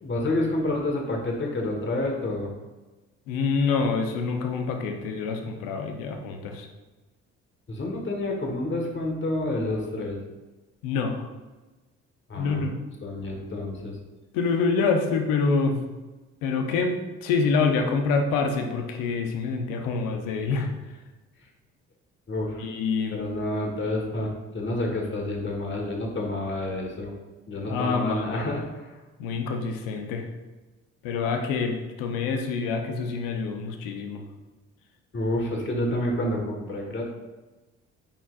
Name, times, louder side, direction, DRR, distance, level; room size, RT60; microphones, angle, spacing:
voice 1, 0.0-2.5 7.7-10.2 12.3-12.6 13.0-14.0 22.3-22.7 23.1-27.1 27.5-28.9 35.1-37.0, left 1 dB, 35° left, 0 dB, 1.6 m, -29 dB
voice 2, 3.3-6.7 10.8-11.3 12.4-12.7 14.3-15.8 16.4-20.7 22.6-23.2 27.6-28.4 29.2-30.3 31.0-34.2, left 4 dB, 80° left, 4 dB, 0.9 m, -26 dB
8.9 x 4.6 x 2.5 m, 1.2 s
hypercardioid pair, 55°, 33 cm